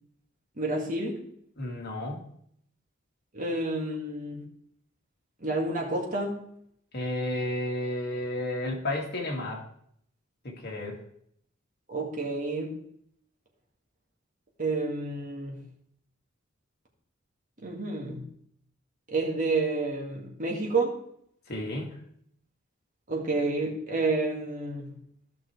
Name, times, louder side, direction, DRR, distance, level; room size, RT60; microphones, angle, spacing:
voice 1, 0.6-1.2 3.3-4.4 5.4-6.3 11.9-12.7 14.6-15.6 17.6-18.2 19.1-20.9 23.1-24.9, right 3 dB, 40° right, -1 dB, 1.9 m, -29 dB
voice 2, 1.6-2.3 6.9-9.7 10.4-11.0 21.5-22.0, left 1 dB, 55° left, 0 dB, 2.0 m, -32 dB
14.5 x 6.0 x 3.3 m, 0.68 s
head